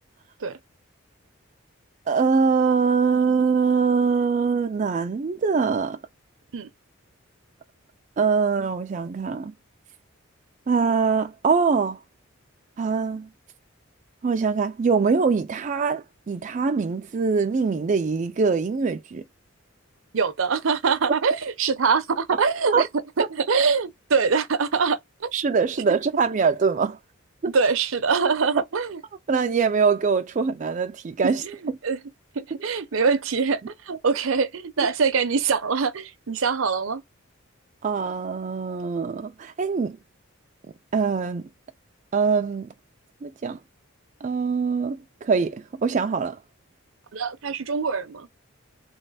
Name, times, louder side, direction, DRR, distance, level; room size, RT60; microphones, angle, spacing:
voice 1, 2.1-6.0 8.2-9.5 10.7-12.0 12.8-13.3 14.2-19.2 22.7-22.9 25.3-27.0 27.4-27.5 29.3-31.4 37.8-40.0 40.9-41.5 42.1-42.7 43.2-43.6 44.2-46.4, right 5 dB, 35° right, 0.3 m, -23 dB
voice 2, 20.1-22.9 23.2-25.3 27.5-29.0 31.2-31.6 31.8-32.0 32.3-37.0 47.1-48.3, right 5 dB, 70° right, 0.6 m, -24 dB
3.4 x 3.2 x 4.0 m
head